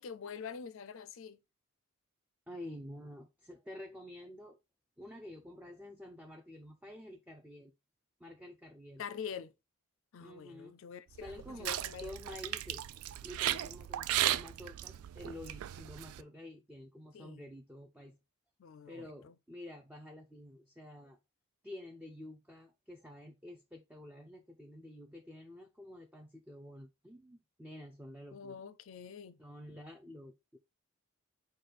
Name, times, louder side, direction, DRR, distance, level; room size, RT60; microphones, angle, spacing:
voice 1, 0.0-1.4 9.0-9.5 10.1-12.4 17.1-17.4 18.6-19.3 28.3-29.4, left 7 dB, 65° left, 0.4 m, -45 dB
voice 2, 2.5-4.6 5.0-7.7 8.2-9.4 10.2-10.8 11.2-12.9 13.2-18.2 18.9-21.2 21.6-28.6 29.4-30.6, left 1 dB, 5° right, 0.4 m, -49 dB
sound 1, 11.1-16.2, right 13 dB, 85° right, 0.3 m, -36 dB
4.9 x 2.3 x 4.1 m
head